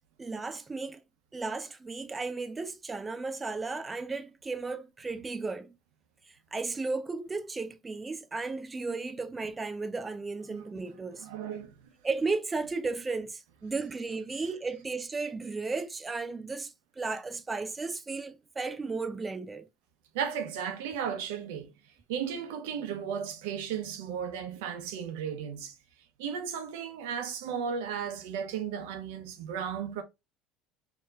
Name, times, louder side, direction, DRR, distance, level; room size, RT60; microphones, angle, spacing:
voice 1, 0.2-1.0 1.3-5.8 6.5-11.3 12.0-19.6, right 3 dB, 15° right, 0.5 m, -34 dB
voice 2, 10.5-10.8 11.1-11.9 20.1-21.7 22.1-25.8 26.2-30.0, right 7 dB, 85° right, 0.9 m, -35 dB
4.5 x 3.0 x 2.5 m
supercardioid pair, 120°, 0 cm